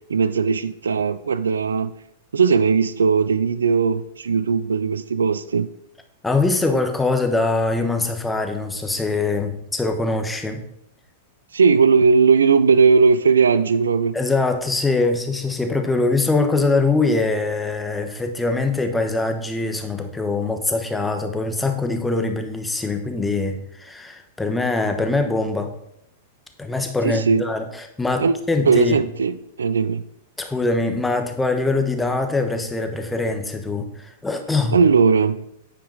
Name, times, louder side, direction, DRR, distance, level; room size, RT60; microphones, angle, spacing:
voice 1, 0.1-1.9 2.3-5.7 11.5-14.2 27.0-27.4 28.2-28.3 28.6-30.0 34.7-35.5, right 5 dB, 85° right, 0.4 m, -18 dB
voice 2, 6.2-10.6 14.1-25.7 26.6-29.0 30.4-34.8, left 3 dB, 10° left, 1.0 m, -23 dB
9.0 x 4.9 x 3.9 m
hypercardioid pair, 110°, 0 cm